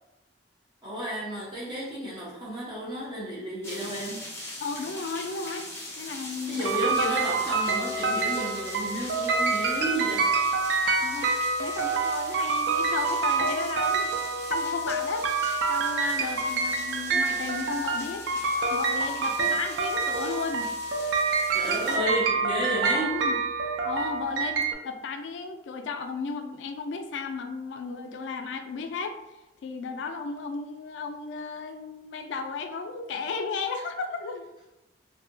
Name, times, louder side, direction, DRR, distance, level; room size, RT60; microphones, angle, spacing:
voice 1, 0.8-4.2 6.2-10.3 12.0-12.1 16.1-16.4 21.5-23.2, right 1 dB, 25° right, -7 dB, 0.9 m, -32 dB
sound 1, 3.6-22.0, left 1 dB, 15° left, 0.5 m, -42 dB
voice 2, 4.6-5.7 6.0-7.0 10.8-14.2 14.5-18.2 18.7-20.7 22.9-23.4 23.8-29.2 29.6-34.4, left 4 dB, 85° left, 6 dB, 0.3 m, -34 dB
sound 2, 6.7-24.7, right 4 dB, 75° right, 0.3 m, -27 dB
2.6 x 2.1 x 2.6 m, 0.97 s
head